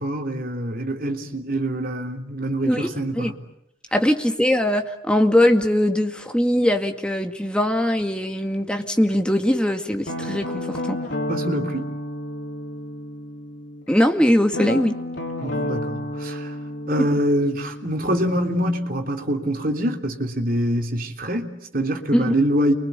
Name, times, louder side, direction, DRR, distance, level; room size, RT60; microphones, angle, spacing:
voice 1, 0.0-3.4 11.3-11.9 15.4-16.5 16.9-22.7, equal, 45° right, 3.3 m, -25 dB
voice 2, 3.9-11.0 13.9-15.0 17.0-17.1 22.1-22.3, left 1 dB, 5° left, 2.1 m, -21 dB
Guitar, 10.1-13.8 14.5-19.2, left 1 dB, 60° left, 4.4 m, -31 dB
30.0 x 24.0 x 8.3 m
head